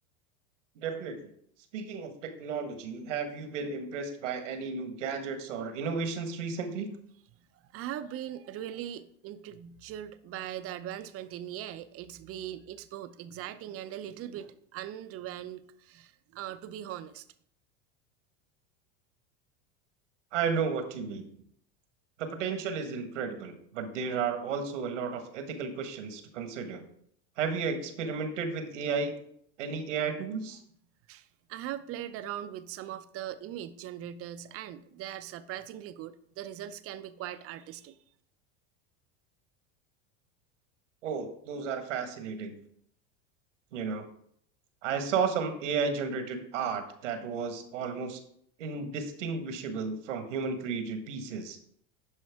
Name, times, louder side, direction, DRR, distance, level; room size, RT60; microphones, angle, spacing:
voice 1, 0.8-1.2 1.7-6.9 20.3-21.3 22.2-26.8 27.4-29.1 29.6-30.6 41.0-42.6 43.7-44.1 44.8-48.2 48.6-51.6, right 5 dB, 90° right, 7 dB, 1.6 m, -33 dB
voice 2, 7.4-17.2 31.1-38.0, right 11 dB, 40° right, 12 dB, 0.7 m, -40 dB
11.0 x 5.4 x 3.6 m, 0.67 s
supercardioid pair, 115°, 36 cm